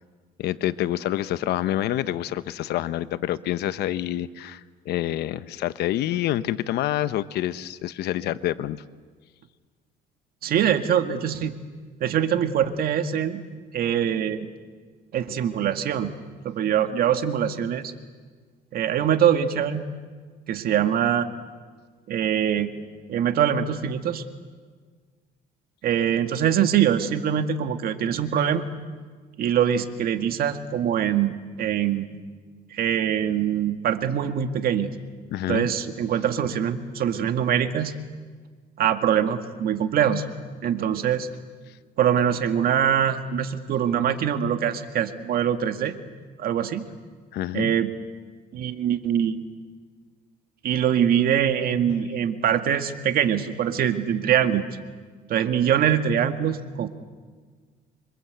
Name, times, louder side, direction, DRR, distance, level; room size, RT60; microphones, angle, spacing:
voice 1, 0.4-8.8 35.3-35.7 47.3-47.8, left 13 dB, 75° left, 14 dB, 1.0 m, -27 dB
voice 2, 10.4-11.6 12.0-13.4 13.7-14.5 15.1-16.1 16.4-17.9 18.7-19.9 20.5-21.3 22.1-22.7 23.1-24.2 25.8-28.7 29.4-31.3 31.6-32.2 32.7-34.9 35.5-38.0 38.8-40.3 40.6-41.3 42.0-46.0 46.4-46.8 47.5-47.9 48.5-49.4 50.6-54.7 55.3-56.9, right 9 dB, 60° right, 8 dB, 2.0 m, -23 dB
27.0 x 25.0 x 8.1 m, 1.5 s
cardioid pair, 110°, 17 cm